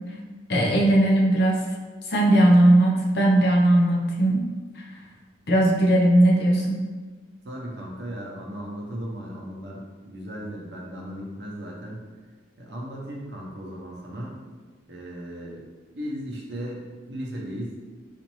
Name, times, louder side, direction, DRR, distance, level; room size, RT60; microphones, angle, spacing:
voice 1, 0.5-1.6 2.1-4.5 4.8-4.9 5.5-6.8, right 1 dB, 60° left, -2 dB, 0.6 m, -18 dB
voice 2, 7.4-12.0 12.6-14.4 14.9-15.6 15.9-17.8, equal, 65° right, -3 dB, 0.8 m, -36 dB
4.2 x 2.5 x 3.0 m, 1.4 s
head